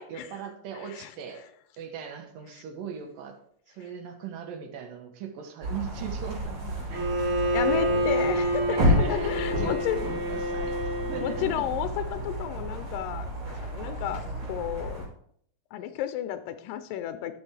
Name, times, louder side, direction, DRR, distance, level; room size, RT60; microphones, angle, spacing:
voice 1, 0.0-1.5 1.8-3.4 3.7-7.1 8.8-11.7, right 7 dB, 85° right, 4 dB, 2.9 m, -39 dB
sound 1, 5.6-15.1, equal, 40° right, 3.5 m, -31 dB
Bowed string instrument, 6.9-11.6, equal, 60° right, 3.6 m, -28 dB
voice 2, 7.5-10.0 11.2-13.3 13.5-15.1 15.7-17.4, left 11 dB, 85° left, 10 dB, 2.3 m, -32 dB
12.0 x 6.1 x 3.3 m, 0.66 s
omnidirectional pair, 3.9 m